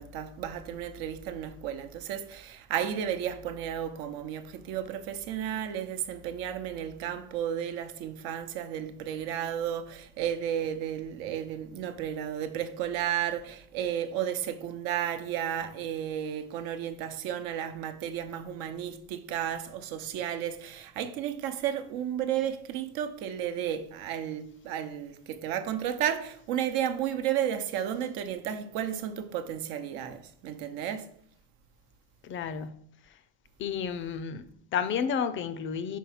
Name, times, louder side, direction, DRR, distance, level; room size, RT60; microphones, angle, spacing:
voice 1, 0.0-31.1, right 10 dB, 80° right, 0.9 m, -33 dB
voice 2, 32.2-32.8 33.6-36.0, left 7 dB, 35° left, 0.4 m, -31 dB
5.5 x 4.6 x 5.7 m
cardioid pair, 165°, 35 cm